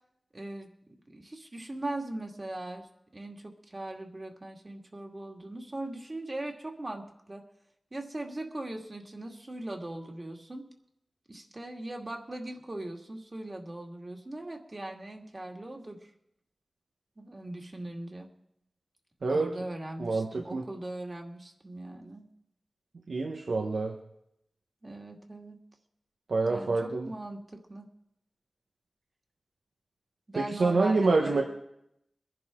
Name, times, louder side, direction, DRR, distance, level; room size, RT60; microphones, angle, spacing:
voice 1, 0.3-0.7 1.1-2.9 3.1-7.4 7.9-10.6 11.3-16.1 17.2-18.3 19.3-22.3 24.8-25.6 26.5-27.8 30.3-31.4, right 1 dB, 35° right, 2 dB, 2.3 m, -40 dB
voice 2, 20.0-20.6 23.1-23.9 26.3-27.1 30.4-31.4, right 3 dB, 80° right, 2 dB, 1.4 m, -27 dB
22.0 x 11.0 x 3.8 m, 0.79 s
cardioid pair, 50°, 0 cm